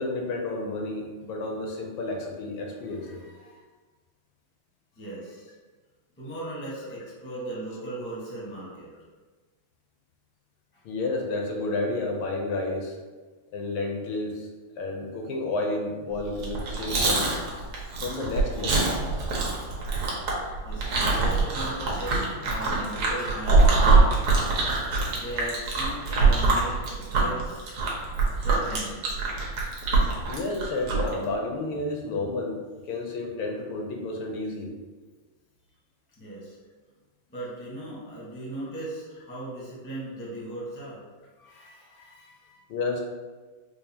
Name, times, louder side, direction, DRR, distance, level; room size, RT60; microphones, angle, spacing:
voice 1, 0.0-3.2 10.8-13.0 13.5-14.5 14.8-17.3 18.0-18.8 22.2-22.3 30.3-32.6 32.9-34.7 42.7-43.0, left 2 dB, 75° left, 1 dB, 1.3 m, -31 dB
voice 2, 2.8-3.6 4.9-5.5 6.2-8.9 10.7-10.8 20.6-23.9 25.1-27.9 28.4-29.3 36.2-36.6 37.3-41.0 41.4-42.6, right 1 dB, 15° left, -7 dB, 0.5 m, -38 dB
Chewing mastication, 16.3-31.1, right 3 dB, 80° right, 1.7 m, -24 dB
4.7 x 2.4 x 2.7 m, 1.3 s
omnidirectional pair, 2.4 m